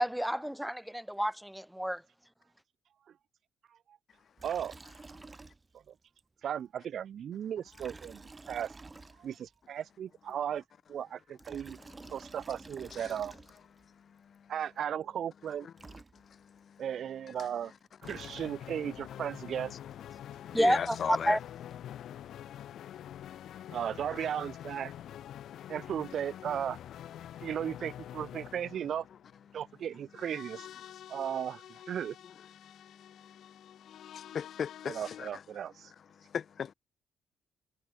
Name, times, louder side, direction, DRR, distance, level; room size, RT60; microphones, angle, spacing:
voice 1, 0.0-2.0 20.5-21.4, equal, 5° right, 0.5 m, -29 dB
Liquid, 4.4-5.9 6.2-6.3 7.7-9.6 11.2-13.9 15.5-15.6 15.8-16.6 17.8-18.9, right 3 dB, 25° right, 1.6 m, -51 dB
voice 2, 4.4-4.7 6.4-8.2 8.5-8.7 9.2-10.6 10.9-11.8 12.1-13.3 14.5-15.7 16.8-17.7 18.0-19.7 23.7-24.9 25.7-26.8 27.4-29.1 29.5-30.7 31.1-32.2 34.9-35.9, right 9 dB, 65° right, 0.5 m, -36 dB
voice 3, 13.8-14.5 15.6-15.7 16.1-16.8 17.3-17.7 19.7-19.8 20.1-21.4 21.9-23.8 24.1-24.2 27.2-27.5 29.5-29.6 31.1-31.2 32.2-32.3 32.6-35.4 35.8-36.7, left 7 dB, 55° left, 0.5 m, -41 dB
sound 1, 18.0-35.3, left 11 dB, 70° left, 2.6 m, -47 dB
cardioid pair, 90°, 0 cm